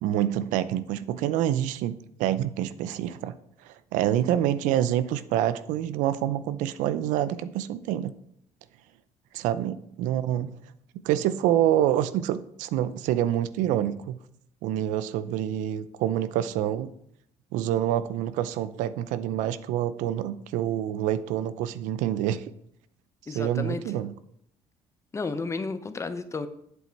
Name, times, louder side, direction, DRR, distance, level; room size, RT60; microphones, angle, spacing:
voice 1, 0.0-3.3 3.6-8.1 9.3-10.6 11.0-14.2 14.6-16.9 17.5-22.4 23.3-24.1, right 11 dB, 90° right, 14 dB, 0.5 m, -27 dB
voice 2, 23.3-23.8 25.1-26.5, left 4 dB, 20° left, 11 dB, 0.8 m, -32 dB
8.0 x 7.7 x 4.5 m, 0.71 s
cardioid pair, 105°, 13 cm